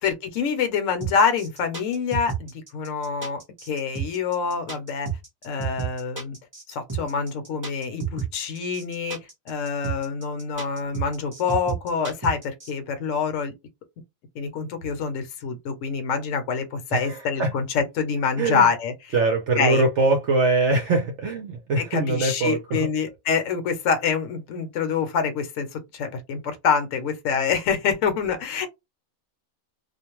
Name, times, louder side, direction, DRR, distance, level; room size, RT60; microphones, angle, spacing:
voice 1, 0.0-3.4 3.7-5.1 5.4-6.4 6.7-9.2 9.5-13.5 14.3-18.9 19.6-19.8 21.8-28.7, left 6 dB, 65° left, 1.0 m, -26 dB
sound 1, 1.0-12.7, right 7 dB, 15° right, 0.8 m, -31 dB
voice 2, 16.9-17.5 18.3-18.7 19.1-22.9, right 3 dB, 65° right, 0.8 m, -23 dB
2.5 x 2.1 x 2.9 m
omnidirectional pair, 1.5 m